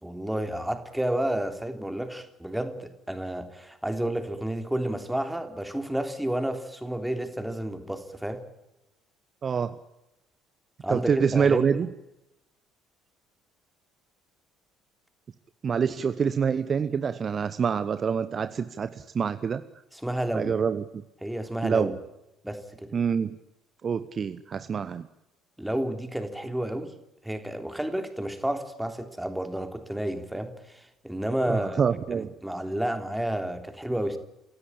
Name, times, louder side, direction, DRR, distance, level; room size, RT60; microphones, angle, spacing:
voice 1, 0.0-8.4 10.8-11.8 19.9-20.6 21.2-21.9 22.4-22.9 25.6-26.9 27.2-34.2, right 1 dB, 5° right, 7 dB, 3.4 m, -31 dB
voice 2, 9.4-9.8 10.9-11.9 15.6-19.6 20.3-20.8 21.6-21.9 22.9-23.4 23.8-25.1 31.5-32.3, right 6 dB, 35° right, 12 dB, 1.0 m, -26 dB
28.5 x 16.5 x 8.5 m, 0.90 s
figure-of-eight pair, 55°, 0 cm